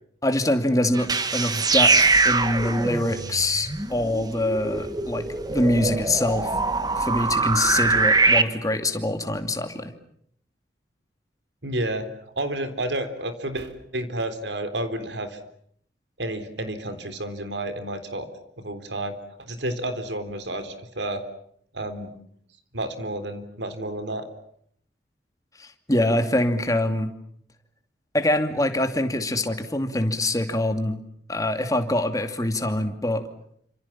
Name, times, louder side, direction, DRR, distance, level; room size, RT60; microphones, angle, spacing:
voice 1, 0.2-6.5 7.0-9.9 25.6-27.1 28.1-31.0 31.3-33.2, left 1 dB, 20° left, 6 dB, 2.6 m, -24 dB
sound 1, 0.9-8.4, right 3 dB, 25° right, 1.5 m, -23 dB
voice 2, 11.6-12.1 12.4-15.4 16.2-18.3 18.6-21.2 21.7-22.1 22.7-24.3, right 1 dB, 85° right, 9 dB, 3.7 m, -30 dB
29.0 x 26.5 x 7.4 m, 0.68 s
head